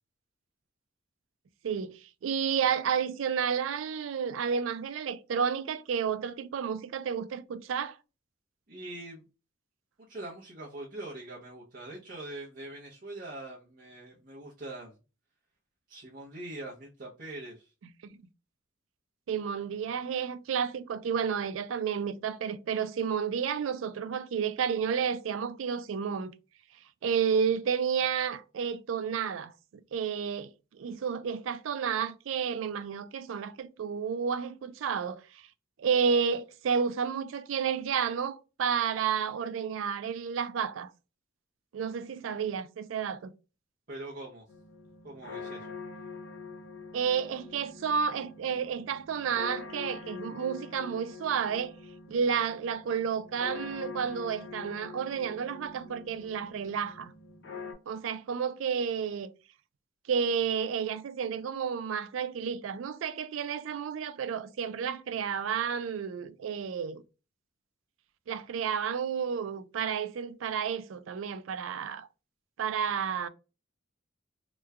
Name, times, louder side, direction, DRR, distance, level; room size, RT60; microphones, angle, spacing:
voice 1, 1.6-8.0 18.0-18.1 19.3-26.3 27.0-29.5 29.9-35.4 35.8-40.9 41.7-43.3 46.9-51.7 52.1-57.1 57.9-59.3 60.1-67.0 68.3-72.1 72.6-73.3, right 7 dB, 80° right, 0.4 m, -31 dB
voice 2, 8.7-9.2 10.0-15.0 15.9-17.7 43.9-44.5 45.0-45.7, right 2 dB, 45° right, 0.7 m, -43 dB
sound 1, 44.5-57.7, left 4 dB, 60° left, 0.8 m, -45 dB
3.1 x 2.2 x 3.4 m
head